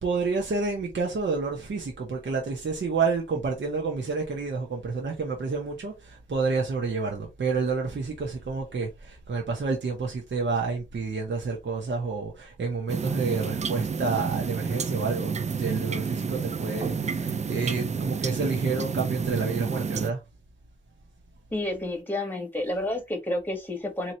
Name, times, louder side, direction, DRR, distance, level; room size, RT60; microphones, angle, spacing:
voice 1, 0.0-20.2, right 4 dB, 65° right, 1.1 m, -29 dB
sound 1, 12.9-20.1, right 5 dB, 35° right, 0.4 m, -30 dB
voice 2, 21.5-24.1, left 1 dB, 10° left, 1.6 m, -30 dB
3.9 x 3.1 x 3.0 m
cardioid pair, 65°, 21 cm